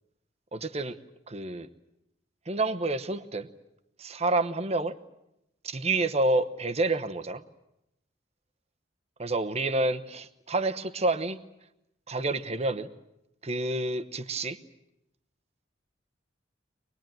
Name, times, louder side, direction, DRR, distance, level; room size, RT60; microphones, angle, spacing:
voice 1, 0.5-1.0 1.3-1.7 2.5-3.5 4.0-5.0 5.6-7.4 9.2-11.4 12.1-12.9 13.4-14.6, right 2 dB, 35° right, 9 dB, 1.0 m, -28 dB
24.5 x 20.0 x 9.2 m, 0.85 s
head